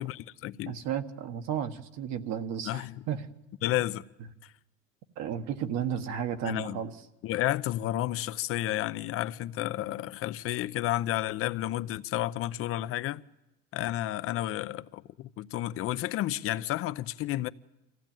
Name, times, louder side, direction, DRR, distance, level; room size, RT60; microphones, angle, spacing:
voice 1, 0.0-0.8 2.6-3.0 3.6-4.0 4.4-4.5 6.4-6.8 7.2-13.2 13.7-17.5, left 14 dB, 50° left, 0.7 m, -31 dB
voice 2, 0.7-3.2 5.2-6.9, right 8 dB, 60° right, 1.6 m, -33 dB
25.0 x 16.0 x 9.1 m
cardioid pair, 130°, 30 cm